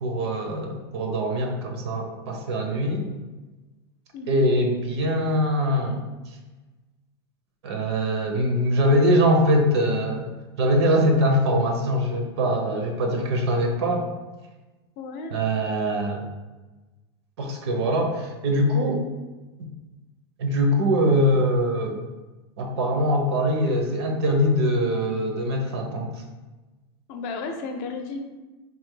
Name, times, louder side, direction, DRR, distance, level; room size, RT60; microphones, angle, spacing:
voice 1, 0.0-3.1 4.3-6.0 7.6-14.1 15.3-16.2 17.4-19.0 20.4-22.0 22.6-26.1, equal, 85° right, 3 dB, 0.8 m, -23 dB
voice 2, 4.1-4.5 15.0-15.4 27.1-28.4, left 3 dB, 50° left, 5 dB, 0.5 m, -34 dB
3.5 x 2.7 x 3.8 m, 1.2 s
supercardioid pair, 150°, 14 cm